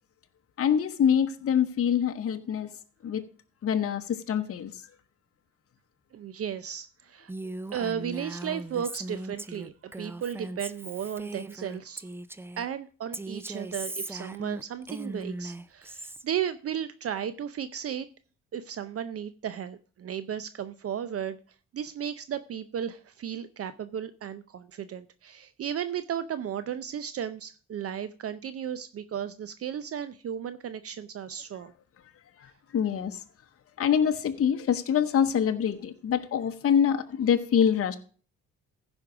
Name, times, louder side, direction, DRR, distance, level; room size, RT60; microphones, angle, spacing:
voice 1, 0.6-2.7 3.0-3.2 3.6-4.8 32.4-33.2 33.8-38.0, left 8 dB, 50° left, 7 dB, 0.9 m, -25 dB
voice 2, 6.1-7.3 7.7-12.0 12.6-18.1 18.5-21.4 21.7-31.7, right 9 dB, 50° right, 13 dB, 0.6 m, -34 dB
Female speech woman speaking, 7.3-12.7 13.1-16.2, right 2 dB, 10° right, 0.5 m, -39 dB
15.0 x 5.3 x 4.9 m, 0.41 s
cardioid pair, 90°, 30 cm